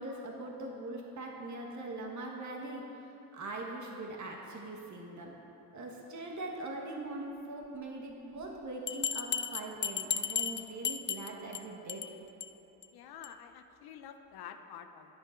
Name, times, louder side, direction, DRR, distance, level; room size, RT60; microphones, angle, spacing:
voice 1, 0.0-2.8 3.3-5.3 5.7-12.0, right 2 dB, 50° right, 0 dB, 1.5 m, -41 dB
Bell, 8.9-11.6 11.9-12.1 12.4-12.5 12.8-12.9 13.2-13.3, left 7 dB, 30° left, 0.4 m, -34 dB
voice 2, 12.9-15.2, left 8 dB, 70° left, 8 dB, 0.8 m, -49 dB
10.0 x 8.8 x 4.5 m, 2.9 s
supercardioid pair, 65°, 38 cm